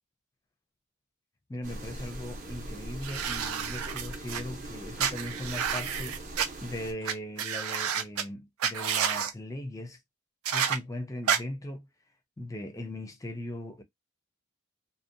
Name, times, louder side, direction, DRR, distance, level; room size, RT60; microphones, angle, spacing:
voice 1, 1.5-10.0 10.5-11.9 12.4-13.8, left 1 dB, 15° left, 0.4 m, -39 dB
sound 1, 1.6-6.9, right 1 dB, 35° right, 0.6 m, -41 dB
sound 2, 3.0-4.4 5.0-6.5 7.0-7.1 7.4-8.2 8.6-9.3 10.4-10.8 11.3-11.4, right 7 dB, 85° right, 0.4 m, -29 dB
2.6 x 2.0 x 2.5 m
head